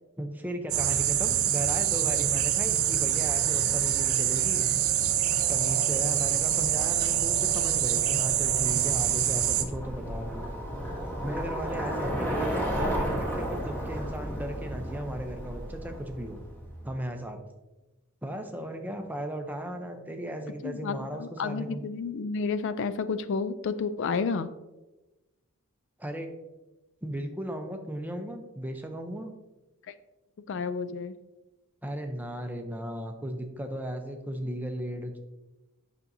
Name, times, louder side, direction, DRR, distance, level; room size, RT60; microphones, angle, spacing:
voice 1, 0.2-4.7 5.5-10.5 11.2-16.4 16.8-17.4 18.2-21.8 26.0-26.3 27.0-29.3 31.8-35.2, equal, 10° right, 5 dB, 0.6 m, -36 dB
sound 1, 0.7-9.6, right 10 dB, 65° right, 0.6 m, -25 dB
Bicycle, 6.0-16.9, equal, 10° left, 1.1 m, -34 dB
voice 2, 20.6-24.5 30.5-31.2, left 5 dB, 55° left, 12 dB, 0.3 m, -31 dB
8.3 x 6.0 x 2.6 m, 1.0 s
head